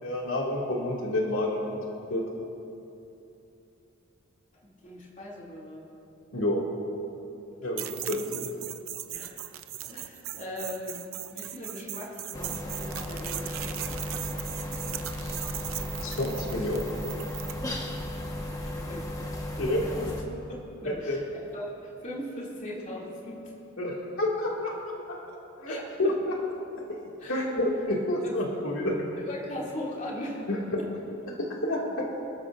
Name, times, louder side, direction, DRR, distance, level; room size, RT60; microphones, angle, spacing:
voice 1, 0.0-1.8 2.1-2.2 6.3-6.6 7.6-8.5 16.0-16.9 19.6-19.9 20.8-21.2 23.8-24.8 25.1-25.2 25.6-26.4 26.9-27.0 27.3-28.9 30.5-30.6 31.3-32.1, left 1 dB, 85° left, -3 dB, 2.2 m, -29 dB
voice 2, 4.8-5.9 9.1-9.4 9.8-11.0 11.3-14.4 18.6-19.1 19.8-20.1 20.5-21.2 21.5-23.5 25.7-26.2 27.2-27.5 28.2-28.4 29.2-30.4 30.8-30.9, left 1 dB, 40° left, -5 dB, 2.6 m, -39 dB
sound 1, 7.8-17.6, right 12 dB, 80° right, 0.6 m, -38 dB
sound 2, 12.3-20.2, left 1 dB, 15° left, 1.2 m, -35 dB
27.5 x 12.5 x 2.6 m, 2.9 s
head